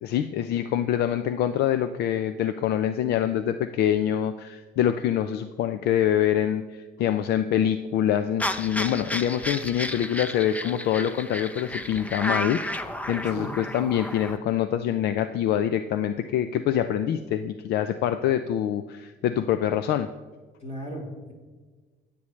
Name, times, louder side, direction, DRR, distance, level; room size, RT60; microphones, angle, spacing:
voice 1, 0.0-12.6 13.1-20.1, left 10 dB, 75° left, 10 dB, 0.5 m, -25 dB
sound 1, 8.4-14.4, left 1 dB, 10° left, 0.7 m, -32 dB
voice 2, 20.6-21.3, equal, 40° left, -1 dB, 4.7 m, -36 dB
25.0 x 8.6 x 3.2 m, 1.4 s
cardioid pair, 110°, 17 cm